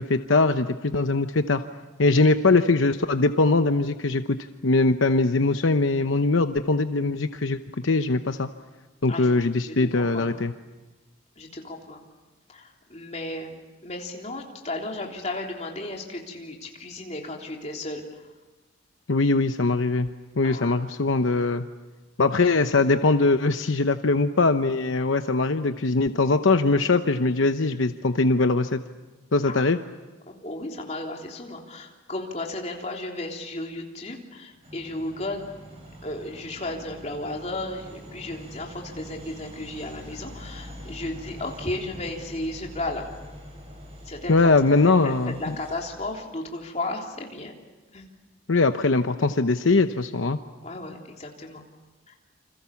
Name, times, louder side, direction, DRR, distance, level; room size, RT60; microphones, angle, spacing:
voice 1, 0.0-1.6 2.0-4.4 4.6-8.5 9.0-10.5 19.1-20.1 20.4-21.6 22.2-28.8 29.3-29.8 44.3-45.5 48.5-50.4, left 3 dB, 75° left, 8 dB, 0.9 m, -21 dB
voice 2, 9.7-10.4 11.4-12.0 12.5-18.2 20.4-20.7 29.5-29.6 30.3-35.5 36.0-43.0 44.0-44.5 44.8-47.5 47.9-48.0 50.6-51.6 52.1-52.2, left 2 dB, 35° left, 1 dB, 3.4 m, -34 dB
sound 1, 34.6-46.1, equal, 30° right, 6.2 m, -44 dB
28.5 x 26.5 x 7.2 m, 1.2 s
head